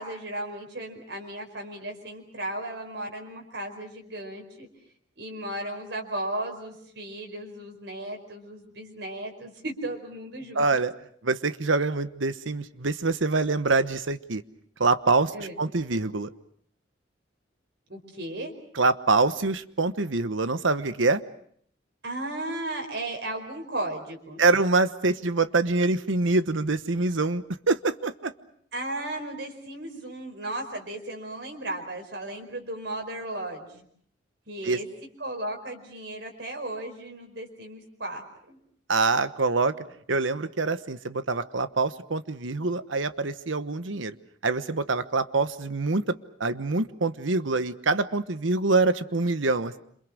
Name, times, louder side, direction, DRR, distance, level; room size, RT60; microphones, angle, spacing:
voice 1, 0.0-4.7 5.2-10.6 15.3-15.6 17.9-18.5 22.0-24.4 28.7-33.8 34.5-34.9 35.2-38.6, right 1 dB, 65° right, 3 dB, 5.0 m, -35 dB
voice 2, 10.5-10.9 11.2-14.4 14.8-16.3 18.7-21.2 24.4-28.3 34.6-34.8 38.9-39.8 40.1-44.1 44.4-46.1 46.4-49.8, right 3 dB, 85° right, 12 dB, 1.1 m, -25 dB
27.5 x 27.5 x 6.3 m, 0.64 s
head